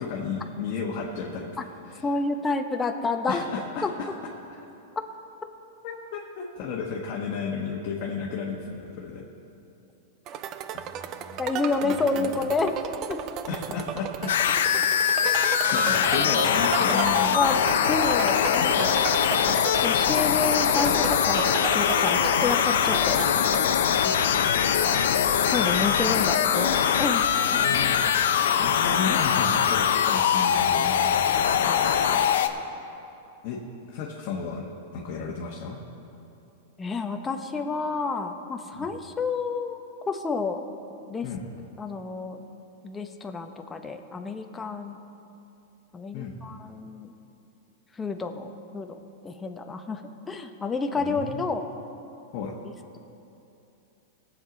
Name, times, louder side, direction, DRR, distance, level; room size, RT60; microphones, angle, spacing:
voice 1, 0.0-1.5 1.9-2.0 3.3-3.9 4.5-4.6 5.8-9.2 10.7-11.4 11.8-12.3 13.5-14.3 15.2-17.4 24.0-24.5 27.4-31.2 33.4-33.6 33.9-34.6 34.9-35.8 38.7-38.9 41.2-41.4 46.1-46.3 51.0-51.5 52.3-52.5, left 5 dB, 45° left, -3 dB, 1.3 m, -33 dB
voice 2, 2.0-3.4 3.8-3.9 11.4-13.2 16.9-17.6 17.9-19.2 19.8-23.2 24.8-25.1 25.5-27.3 30.7-32.3 36.8-39.8 40.1-40.6 41.1-41.3 41.8-42.4 42.8-45.0 45.9-47.1 47.9-49.0 49.2-50.0 50.3-51.6, left 4 dB, 15° left, 5 dB, 0.8 m, -29 dB
sound 1, 10.3-23.6, right 9 dB, 40° right, 0.4 m, -34 dB
sound 2, 14.3-32.5, left 8 dB, 80° left, 0.6 m, -22 dB
18.5 x 7.4 x 3.9 m, 2.8 s
hypercardioid pair, 135°, 0 cm